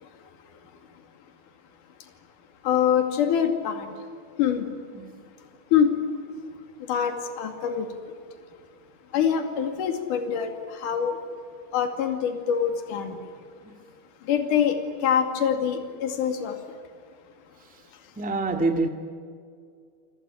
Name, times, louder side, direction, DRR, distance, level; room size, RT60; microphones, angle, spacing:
voice 1, 2.6-3.9 4.4-4.7 5.7-5.9 6.9-7.9 9.1-11.2 11.7-13.2 14.3-14.8 15.0-16.6, left 8 dB, 60° left, 3.8 m, -24 dB
voice 2, 18.2-18.9, right 3 dB, 5° right, 0.8 m, -26 dB
29.5 x 19.0 x 9.9 m
omnidirectional pair, 4.4 m